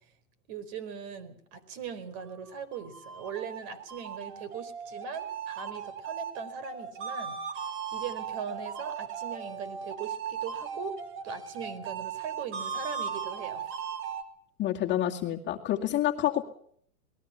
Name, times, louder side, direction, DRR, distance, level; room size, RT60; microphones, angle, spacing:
voice 1, 0.5-7.4 7.9-13.7, right 7 dB, 45° right, 14 dB, 4.6 m, -40 dB
sound 1, 2.5-14.2, right 7 dB, 25° right, 2.4 m, -38 dB
voice 2, 14.6-16.4, left 12 dB, 25° left, 1 dB, 2.3 m, -28 dB
27.0 x 20.5 x 5.9 m, 0.63 s
hypercardioid pair, 140°, 45 cm